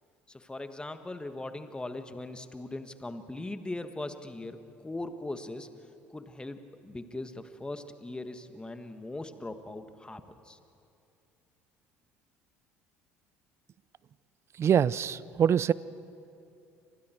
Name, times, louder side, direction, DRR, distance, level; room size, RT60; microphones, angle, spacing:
voice 1, 0.3-5.7 6.1-10.6, left 2 dB, 15° left, 8 dB, 1.6 m, -40 dB
voice 2, 14.6-15.7, right 8 dB, 40° right, 20 dB, 0.6 m, -24 dB
29.5 x 25.5 x 4.6 m, 2.6 s
hypercardioid pair, 60°, 7 cm